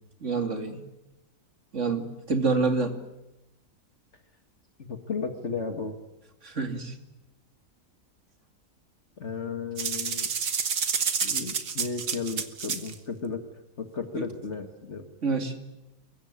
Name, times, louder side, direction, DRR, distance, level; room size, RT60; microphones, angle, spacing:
voice 1, 0.2-0.8 1.7-3.0 6.4-6.9 14.1-14.3 15.2-15.5, right 4 dB, 50° right, 7 dB, 2.8 m, -27 dB
voice 2, 4.8-6.0 9.2-10.3 11.2-13.4 13.8-15.1, left 5 dB, 45° left, 7 dB, 2.1 m, -34 dB
sound 1, 9.8-12.9, right 6 dB, 80° right, 2.2 m, -29 dB
25.5 x 22.5 x 9.7 m, 0.95 s
omnidirectional pair, 1.7 m